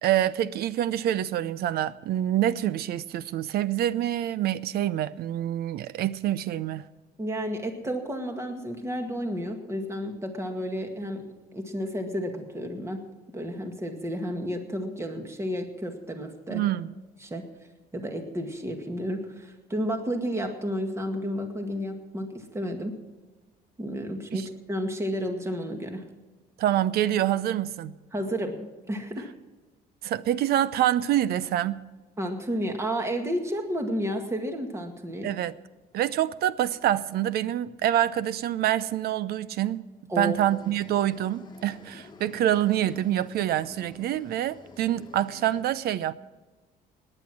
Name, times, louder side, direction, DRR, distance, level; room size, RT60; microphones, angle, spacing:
voice 1, 0.0-6.9 16.5-16.9 24.3-24.5 26.6-28.0 30.0-31.9 35.2-35.6 35.9-39.8 40.2-46.1, right 12 dB, 70° right, 0.7 m, -26 dB
voice 2, 7.2-11.2 11.5-13.0 13.3-16.6 17.2-17.4 17.9-22.9 23.8-26.0 28.1-29.3 32.2-35.3 40.1-40.4, equal, 15° right, 2.0 m, -31 dB
sound 1, 40.4-45.6, left 4 dB, 25° left, 1.5 m, -50 dB
18.5 x 9.9 x 6.2 m
cardioid pair, 110°, 17 cm